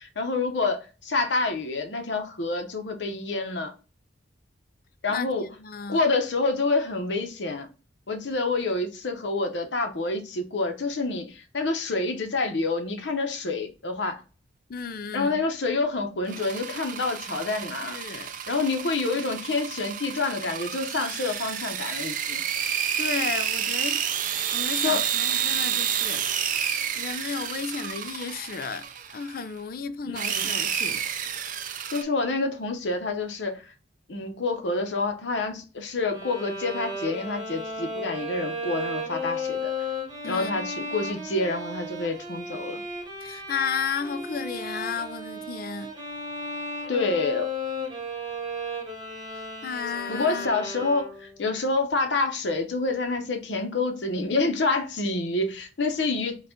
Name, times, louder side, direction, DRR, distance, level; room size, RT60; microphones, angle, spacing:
voice 1, 0.0-3.7 5.0-5.5 5.9-7.7 8.1-14.2 15.1-18.0 18.5-22.4 24.8-25.0 30.1-30.4 31.9-33.6 34.1-39.7 40.2-42.8 46.9-47.5 50.1-56.4, left 3 dB, 70° left, 0.8 m, -27 dB
voice 2, 5.6-6.0 14.7-15.4 17.8-18.3 23.0-26.3 26.9-28.9 29.1-31.0 40.2-40.6 43.2-45.9 49.6-50.5, left 6 dB, 50° left, 0.4 m, -33 dB
sound 1, 16.3-29.4 30.2-32.0, right 9 dB, 45° right, 0.4 m, -30 dB
Bowed string instrument, 36.1-51.4, left 1 dB, 20° right, 1.1 m, -34 dB
4.7 x 2.4 x 3.6 m
head